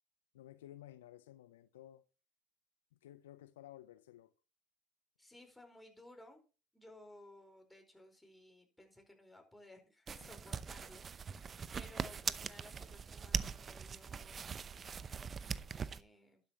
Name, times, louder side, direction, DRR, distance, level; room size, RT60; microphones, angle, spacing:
voice 1, 0.3-2.0 3.0-4.3 10.2-10.3, left 13 dB, 85° left, 0.7 m, -55 dB
voice 2, 5.2-6.4 6.7-15.3 15.7-16.4, left 1 dB, 5° left, 4.7 m, -59 dB
sound 1, 10.1-16.0, right 6 dB, 35° right, 0.7 m, -41 dB
12.0 x 10.5 x 3.0 m
hypercardioid pair, 75°, 0 cm